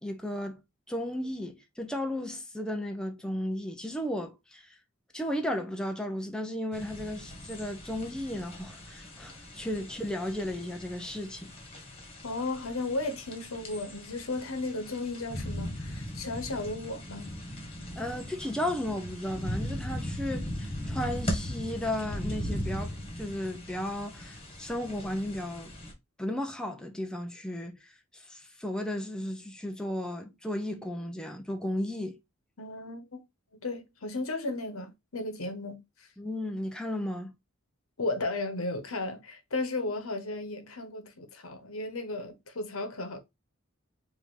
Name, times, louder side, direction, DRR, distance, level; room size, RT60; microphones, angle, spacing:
voice 1, 0.0-0.6 0.9-4.7 5.1-11.5 18.0-25.8 26.2-32.2 36.2-37.3, left 1 dB, 5° left, 0.6 m, -34 dB
sound 1, 6.7-25.9, equal, 30° left, 1.6 m, -39 dB
voice 2, 12.2-17.3 32.6-33.2 33.5-36.1 38.0-43.2, left 2 dB, 80° left, 1.1 m, -35 dB
4.9 x 2.8 x 3.6 m
head